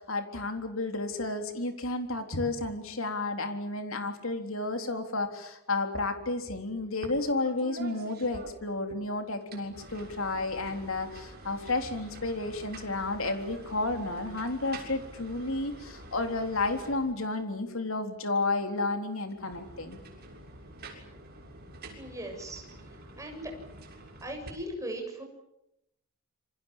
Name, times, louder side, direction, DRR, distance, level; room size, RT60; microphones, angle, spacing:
voice 1, 0.0-20.0, left 2 dB, 65° left, 6 dB, 3.8 m, -32 dB
sound 1, 7.0-7.2 7.4-9.0 9.4-17.5 19.2-24.5, right 2 dB, 45° right, 6.7 m, -47 dB
voice 2, 21.9-23.5 24.2-25.2, right 1 dB, 15° right, 2 dB, 7.5 m, -39 dB
27.5 x 25.5 x 7.5 m, 0.82 s
head